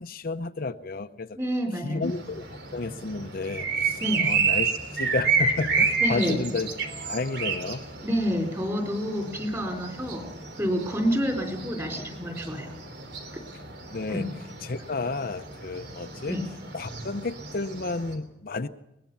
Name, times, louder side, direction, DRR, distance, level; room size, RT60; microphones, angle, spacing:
voice 1, 0.0-1.3 1.8-2.4 2.7-6.7 7.0-7.8 13.9-14.3 14.6-16.4 16.7-18.7, left 3 dB, 55° left, 9 dB, 0.7 m, -32 dB
voice 2, 1.4-2.1 4.0-4.3 6.0-6.4 8.0-10.2 10.6-12.7 14.1-14.2 16.3-16.4, equal, 15° right, 4 dB, 4.5 m, -28 dB
sound 1, 2.0-18.1, right 5 dB, 65° right, 3.4 m, -31 dB
22.0 x 20.0 x 7.1 m, 0.83 s
head